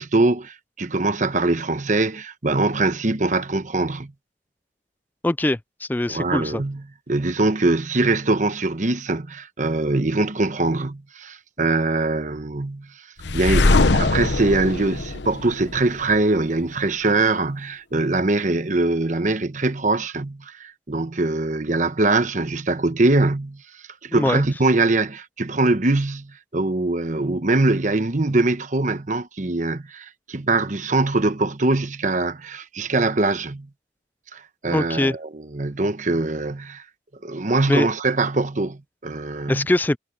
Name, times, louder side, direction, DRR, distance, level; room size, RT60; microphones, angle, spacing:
voice 1, 0.0-4.1 6.1-12.9 13.3-23.6 24.0-33.7 34.3-36.8 37.2-39.7, right 2 dB, 40° right, 1.0 m, -22 dB
voice 2, 5.2-6.6 24.1-24.4 34.7-35.1 37.7-37.9 39.5-40.0, left 1 dB, 10° left, 0.3 m, -22 dB
sound 1, 13.2-16.2, left 2 dB, 70° left, 0.9 m, -21 dB
head